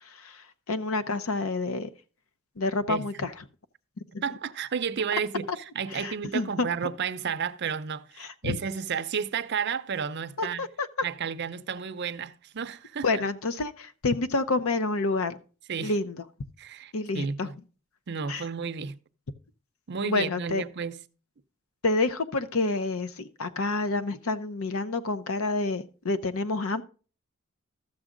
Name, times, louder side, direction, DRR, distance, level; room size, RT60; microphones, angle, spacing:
voice 1, 0.0-1.9 2.6-3.3 4.1-4.2 5.9-6.9 8.2-8.6 10.4-10.9 13.0-15.4 15.8-16.2 16.9-17.5 18.3-18.4 20.0-20.6 21.8-26.8, left 3 dB, 80° left, 0.8 m, -28 dB
voice 2, 4.2-5.5 5.7-10.6 11.0-13.1 15.7-15.9 16.6-17.6 18.1-19.0 19.9-21.0, right 6 dB, 55° right, 0.6 m, -32 dB
13.0 x 7.1 x 3.8 m
head